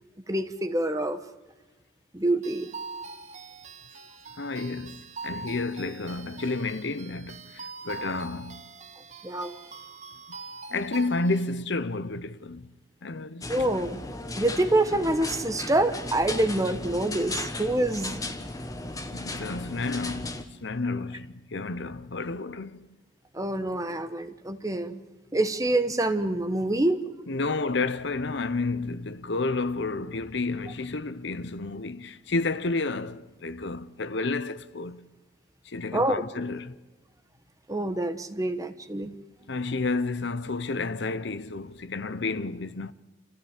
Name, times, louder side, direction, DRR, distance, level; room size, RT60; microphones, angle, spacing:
voice 1, 0.3-1.2 2.1-2.7 9.2-9.5 13.5-14.0 14.4-18.2 23.3-25.0 25.3-27.0 35.9-36.2 37.7-39.1, right 1 dB, 15° right, 1.1 m, -26 dB
sound 1, 2.4-11.5, right 4 dB, 35° right, 1.2 m, -43 dB
voice 2, 4.4-8.6 10.3-10.4 10.7-12.7 13.0-13.5 19.0-22.9 27.3-35.1 35.6-36.8 39.5-42.9, left 3 dB, 60° left, 0.7 m, -31 dB
sound 2, 13.4-20.4, left 2 dB, 15° left, 1.3 m, -36 dB
28.0 x 15.0 x 8.9 m
head